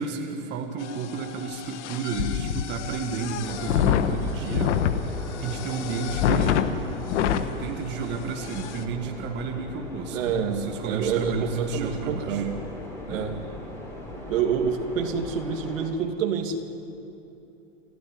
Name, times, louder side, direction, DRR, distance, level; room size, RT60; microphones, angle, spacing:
voice 1, 0.0-4.8 5.4-6.6 7.1-12.5 13.1-13.3, right 5 dB, 25° right, 3 dB, 1.7 m, -32 dB
sound 1, 0.8-7.5 8.0-8.1 8.4-8.8, left 9 dB, 55° left, 1.5 m, -27 dB
sound 2, 3.4-15.9, left 1 dB, 5° left, 4.3 m, -39 dB
voice 2, 10.1-12.6 13.1-13.3 14.1-16.6, right 7 dB, 70° right, 5 dB, 2.6 m, -27 dB
29.5 x 13.0 x 9.6 m, 2.9 s
supercardioid pair, 150°, 40 cm